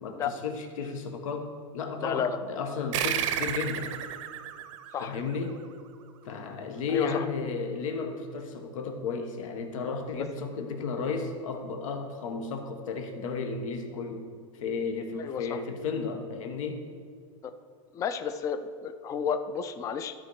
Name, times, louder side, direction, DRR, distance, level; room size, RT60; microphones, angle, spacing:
voice 1, 0.0-3.9 5.0-5.6 6.2-14.3 14.5-16.8, left 4 dB, 85° left, 5 dB, 1.1 m, -33 dB
voice 2, 2.0-2.4 4.9-5.2 6.9-7.3 15.2-15.6 17.4-17.5 17.9-20.1, left 7 dB, 20° left, 10 dB, 0.3 m, -31 dB
sound 1, 2.9-5.9, right 10 dB, 70° right, 0.7 m, -33 dB
13.0 x 4.3 x 4.7 m, 2.1 s
supercardioid pair, 145°, 17 cm